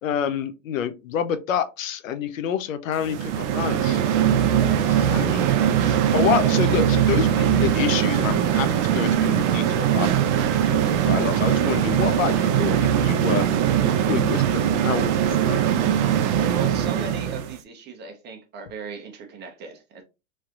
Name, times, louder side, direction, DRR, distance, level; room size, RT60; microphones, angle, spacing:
voice 1, 0.0-4.0 5.0-5.4 5.8-13.5 13.9-15.6, left 9 dB, 85° left, 0.6 m, -28 dB
sound 1, 3.0-17.5, right 9 dB, 65° right, 0.6 m, -21 dB
voice 2, 4.5-5.4 16.5-20.0, right 4 dB, 25° right, 0.8 m, -37 dB
3.2 x 2.8 x 2.4 m
hypercardioid pair, 115°, 39 cm